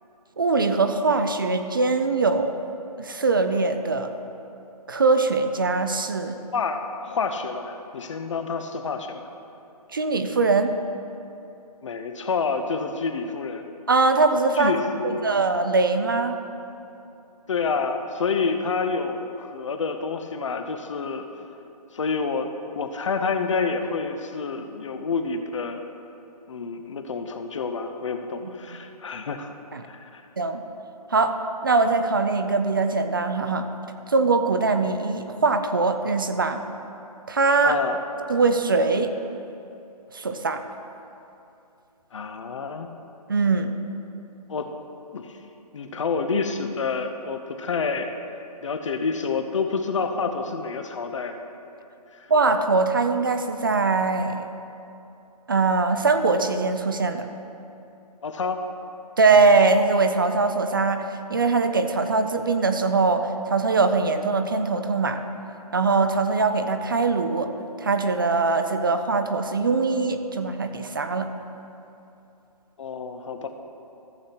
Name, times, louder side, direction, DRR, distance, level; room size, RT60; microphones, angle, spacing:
voice 1, 0.4-2.6 3.0-4.1 4.9-6.4 9.9-10.7 13.9-14.8 15.0-16.4 28.4-28.5 29.7-29.8 30.4-30.6 31.1-33.7 34.1-36.6 37.3-37.8 38.3-39.1 40.1-40.6 43.3-43.8 52.3-54.5 55.5-57.3 59.2-65.2 65.7-67.5 67.8-71.3, right 3 dB, 35° right, 7 dB, 0.4 m, -22 dB
voice 2, 6.5-9.3 11.8-13.6 14.6-15.3 17.5-21.2 21.9-25.8 26.5-29.5 29.9-30.2 37.6-38.0 42.1-42.9 44.5-44.7 45.1-45.4 45.7-48.1 48.6-51.4 52.1-52.3 58.2-58.6 72.8-73.5, left 4 dB, 50° left, 6 dB, 0.8 m, -28 dB
15.0 x 7.9 x 2.9 m, 2.8 s
hypercardioid pair, 170°, 21 cm